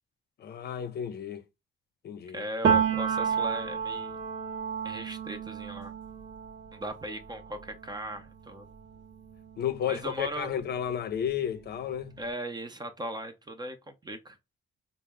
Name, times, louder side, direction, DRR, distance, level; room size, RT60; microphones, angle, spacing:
voice 1, 0.4-1.4 2.0-2.4 9.6-12.1, left 9 dB, 55° left, 0.5 m, -32 dB
voice 2, 2.3-4.2 4.8-5.9 6.7-8.7 9.9-10.6 12.2-14.4, right 1 dB, 20° right, 0.5 m, -38 dB
Piano, 2.6-10.3 10.6-12.2, right 7 dB, 65° right, 0.7 m, -32 dB
3.5 x 2.0 x 3.4 m
cardioid pair, 90°, 20 cm